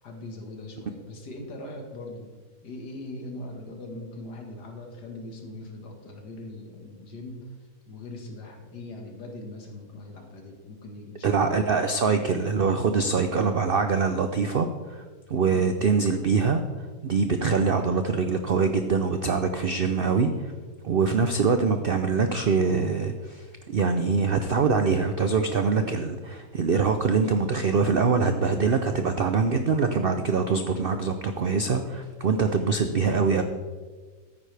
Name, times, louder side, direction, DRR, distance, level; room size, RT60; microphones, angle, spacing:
voice 1, 0.0-2.3 2.6-7.5 7.9-11.8 15.5-15.7, left 2 dB, 75° left, 2 dB, 2.3 m, -41 dB
voice 2, 11.2-15.0 15.3-16.6 17.0-20.5 20.8-33.4, right 5 dB, 75° right, 7 dB, 0.5 m, -24 dB
13.5 x 9.5 x 3.4 m, 1.4 s
omnidirectional pair, 1.8 m